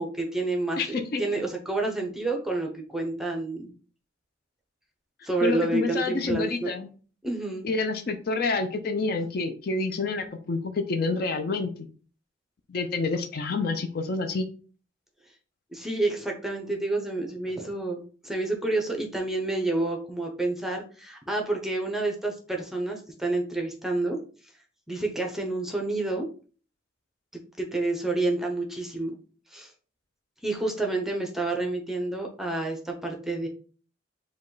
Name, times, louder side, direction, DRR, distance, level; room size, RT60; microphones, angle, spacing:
voice 1, 0.0-3.7 5.2-6.7 7.2-7.7 15.7-24.2 24.9-26.3 27.6-29.1 29.5-29.7 30.4-33.5, right 2 dB, ahead, 1 dB, 0.7 m, -29 dB
voice 2, 0.8-1.2 5.4-6.9 7.6-11.9 12.7-14.5, left 3 dB, 50° left, 7 dB, 0.5 m, -28 dB
5.1 x 2.3 x 3.9 m, 0.40 s
head